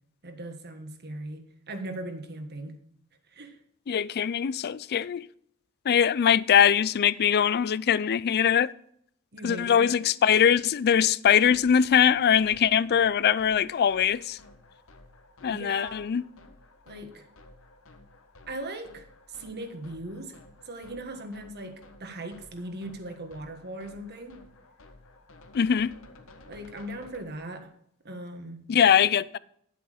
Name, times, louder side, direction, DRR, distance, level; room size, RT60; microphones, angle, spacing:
voice 1, 0.2-2.8 3.3-3.6 9.3-10.1 15.5-16.1 16.9-17.3 18.5-20.4 20.6-24.4 26.5-27.7 28.0-28.7, right 1 dB, 50° right, 1.4 m, -39 dB
voice 2, 3.9-5.3 5.9-8.7 9.4-14.4 15.4-16.2 25.5-25.9 28.7-29.4, left 8 dB, 45° left, 0.4 m, -22 dB
sound 1, 11.4-27.3, left 2 dB, 65° left, 1.4 m, -53 dB
10.5 x 7.9 x 5.0 m
head